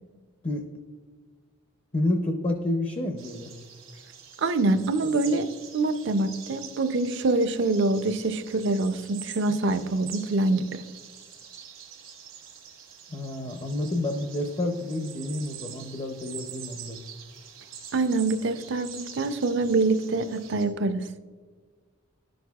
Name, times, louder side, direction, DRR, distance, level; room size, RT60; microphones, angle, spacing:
voice 1, 1.9-3.5 13.1-17.0, left 1 dB, 30° left, 4 dB, 0.5 m, -29 dB
sound 1, 3.2-20.7, right 8 dB, 85° right, 1.2 m, -45 dB
voice 2, 4.4-5.5 5.7-10.8 17.9-21.0, right 2 dB, 60° right, 11 dB, 0.5 m, -25 dB
10.5 x 6.3 x 2.3 m, 1.5 s
head